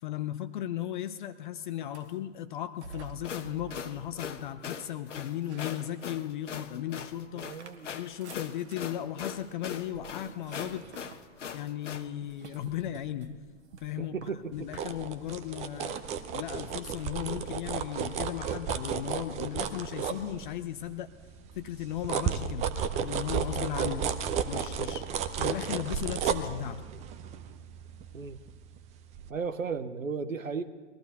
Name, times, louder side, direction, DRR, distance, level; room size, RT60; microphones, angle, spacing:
voice 1, 0.0-7.5 7.9-11.1 11.5-13.3 13.8-16.0 16.3-21.1 21.6-22.7 23.0-24.1 24.5-25.0 25.4-26.8, left 12 dB, 40° left, 11 dB, 0.6 m, -36 dB
sound 1, 1.8-2.3 2.8-4.8 5.2-6.4 6.8-16.3, right 3 dB, 60° right, 1.4 m, -51 dB
sound 2, 3.1-12.1, left 7 dB, 65° left, 1.1 m, -40 dB
voice 2, 7.3-7.9 14.0-14.7 24.0-24.1 28.1-28.4 29.3-30.6, right 5 dB, 80° right, 11 dB, 0.8 m, -35 dB
sound 3, 14.5-20.8 21.2-28.8 29.1-29.3, right 7 dB, 15° right, 0.6 m, -33 dB
20.5 x 14.0 x 4.1 m, 1.4 s
figure-of-eight pair, 105°, 39 cm